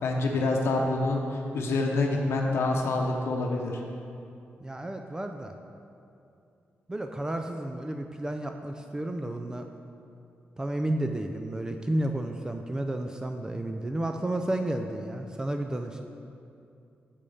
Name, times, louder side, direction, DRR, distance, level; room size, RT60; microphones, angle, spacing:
voice 1, 0.0-3.8, left 2 dB, 75° left, 0 dB, 0.8 m, -27 dB
voice 2, 4.6-5.5 6.9-9.7 10.6-16.0, right 1 dB, 15° right, 5 dB, 0.4 m, -32 dB
6.9 x 5.1 x 5.4 m, 2.6 s
cardioid pair, 90°, 4 cm